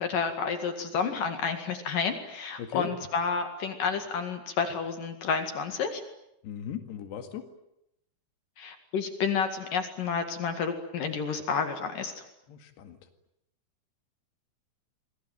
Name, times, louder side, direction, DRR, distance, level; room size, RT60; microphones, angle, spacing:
voice 1, 0.0-6.0 8.6-12.2, left 5 dB, 60° left, 7 dB, 3.4 m, -30 dB
voice 2, 6.4-7.4 12.5-13.0, left 8 dB, 85° left, 7 dB, 4.2 m, -37 dB
28.5 x 22.0 x 9.3 m, 0.82 s
omnidirectional pair, 4.7 m